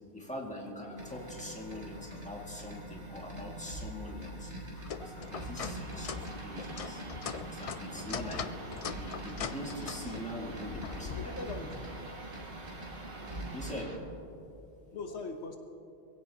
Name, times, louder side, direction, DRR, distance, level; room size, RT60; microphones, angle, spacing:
voice 1, 0.1-4.5 4.9-7.0 7.4-8.5 8.9-11.4 13.5-14.0, left 1 dB, 5° left, -2 dB, 2.0 m, -43 dB
sound 1, 1.0-13.8, right 1 dB, 75° right, 2.8 m, -45 dB
sound 2, 4.8-11.3, left 7 dB, 55° left, 0.4 m, -41 dB
sound 3, 4.9-14.0, right 3 dB, 50° right, 1.4 m, -47 dB
voice 2, 11.1-11.9 13.1-13.6 14.9-15.6, left 4 dB, 70° left, 5 dB, 1.3 m, -41 dB
22.5 x 16.0 x 2.9 m, 2.6 s
omnidirectional pair, 1.2 m